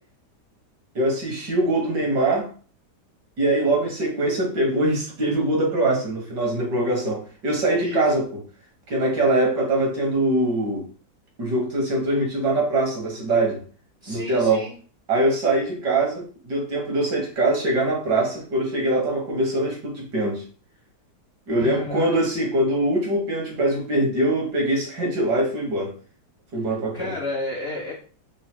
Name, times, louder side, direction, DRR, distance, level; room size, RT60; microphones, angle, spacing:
voice 1, 1.0-2.5 3.4-8.2 8.9-10.9 11.4-13.6 14.1-14.6 15.1-20.4 21.5-25.9 26.5-27.1, right 2 dB, 70° right, -2 dB, 2.1 m, -23 dB
voice 2, 7.8-8.1 14.0-14.8 21.6-22.5 26.9-27.9, left 3 dB, 70° left, 0 dB, 0.5 m, -31 dB
4.7 x 2.1 x 4.4 m, 0.41 s
omnidirectional pair, 1.9 m